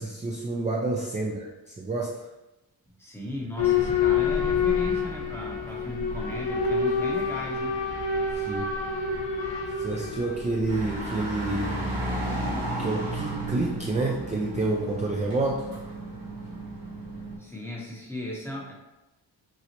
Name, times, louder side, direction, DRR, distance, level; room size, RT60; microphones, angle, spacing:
voice 1, 0.0-2.3 8.3-8.7 9.8-12.0 12.8-15.7, right 2 dB, 20° right, -2 dB, 0.3 m, -29 dB
voice 2, 2.9-7.7 17.4-18.7, left 1 dB, 5° left, -3 dB, 0.8 m, -37 dB
Boat Water vehicle / Alarm, 3.6-14.2, left 5 dB, 70° left, 0.7 m, -28 dB
sound 1, 10.7-17.4, right 1 dB, 50° right, 1.3 m, -33 dB
3.9 x 2.0 x 2.9 m, 0.96 s
cardioid pair, 75°, 46 cm